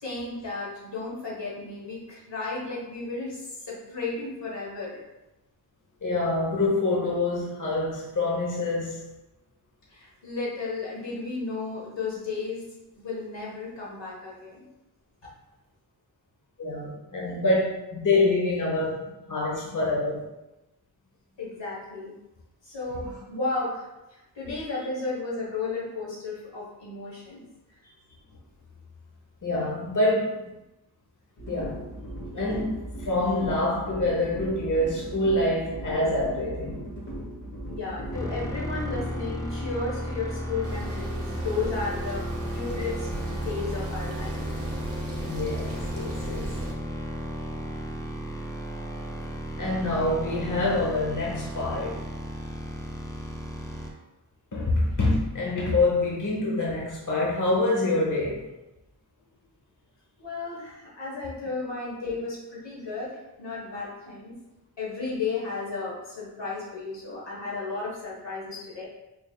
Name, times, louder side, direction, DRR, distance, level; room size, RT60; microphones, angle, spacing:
voice 1, 0.0-5.0 9.9-12.7 12.9-14.6 21.4-22.1 22.6-27.4 37.7-42.2 42.5-44.4 60.2-64.4 64.8-68.9, left 3 dB, 85° left, -5 dB, 1.4 m, -34 dB
voice 2, 6.0-9.0 16.6-20.2 23.1-23.2 24.5-24.8 29.4-30.5 31.5-31.8 32.3-36.9 45.2-46.7 49.6-52.0 54.5-58.5, left 2 dB, 45° left, -3 dB, 0.9 m, -26 dB
sound 1, 31.4-41.4, right 1 dB, 30° left, 1.2 m, -38 dB
sound 2, 38.1-53.9, equal, 10° left, 0.5 m, -34 dB
sound 3, 40.6-46.7, right 2 dB, 35° right, 0.8 m, -37 dB
4.5 x 3.3 x 2.3 m, 0.98 s
wide cardioid pair, 80°, 42 cm